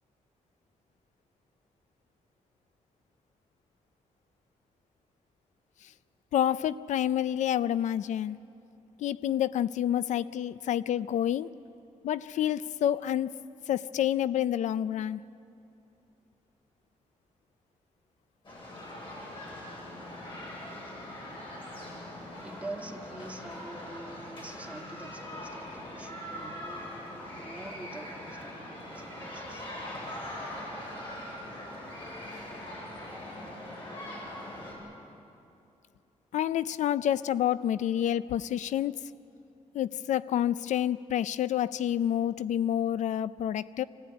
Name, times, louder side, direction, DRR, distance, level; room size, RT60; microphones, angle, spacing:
voice 1, 6.3-8.4 9.0-11.5 12.0-13.3 13.7-15.2 36.3-39.1 39.7-43.8, left 10 dB, 80° left, 17 dB, 0.4 m, -28 dB
sound 1, 18.4-34.7, left 1 dB, 45° left, 7.9 m, -42 dB
voice 2, 22.4-29.7, right 2 dB, 10° right, 2 dB, 2.0 m, -45 dB
26.5 x 15.5 x 9.5 m, 2.7 s
cardioid pair, 110°, 12 cm